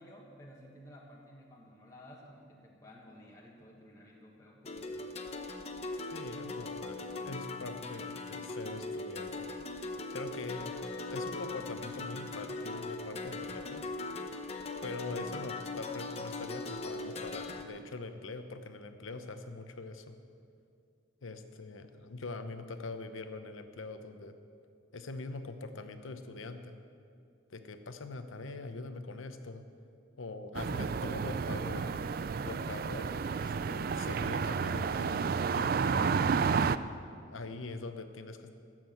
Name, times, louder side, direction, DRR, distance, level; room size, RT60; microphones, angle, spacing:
voice 1, 0.0-5.2, equal, 15° left, -3 dB, 1.5 m, -54 dB
sound 1, 4.6-17.6, left 3 dB, 30° left, 0.8 m, -40 dB
voice 2, 6.1-10.7 11.1-13.9 14.8-20.2 21.2-24.3 24.9-26.7 27.5-29.6 30.2-36.3 37.3-38.5, left 3 dB, 80° left, 8 dB, 0.9 m, -43 dB
sound 2, 30.5-36.8, right 5 dB, 45° right, 0.3 m, -31 dB
14.5 x 7.7 x 7.8 m, 2.4 s
head